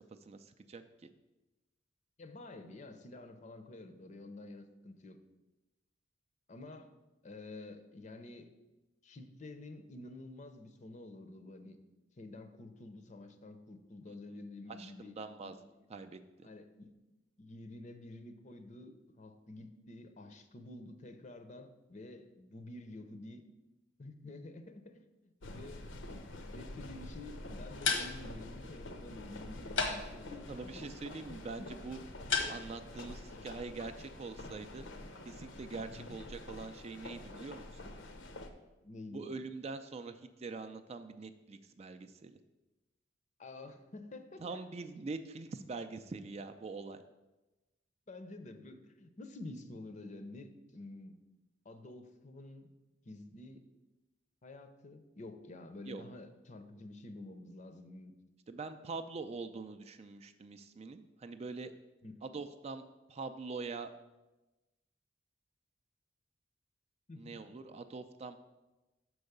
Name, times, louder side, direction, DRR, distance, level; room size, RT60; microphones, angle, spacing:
voice 1, 0.3-0.8 14.8-15.6 15.9-16.5 30.5-32.0 32.5-34.9 35.2-37.8 39.1-42.4 44.4-47.0 55.9-56.0 58.5-61.7 62.2-62.8 63.1-63.9 67.2-68.4, right 4 dB, 35° right, 9 dB, 0.4 m, -44 dB
voice 2, 2.2-5.2 6.5-6.9 7.2-8.5 9.0-11.8 12.2-15.1 15.4-15.5 16.4-16.9 17.4-23.4 24.0-30.9 31.6-31.7 35.9-36.2 38.8-39.3 43.4-44.6 48.1-51.1 51.6-52.7 53.0-53.6 54.4-58.1 62.0-62.1 67.1-67.4, left 2 dB, 40° left, 8 dB, 0.6 m, -49 dB
sound 1, 25.4-38.5, left 2 dB, 70° left, 0.7 m, -47 dB
sound 2, 27.5-32.9, left 5 dB, 90° left, 1.3 m, -38 dB
6.1 x 4.7 x 6.6 m, 1.1 s
head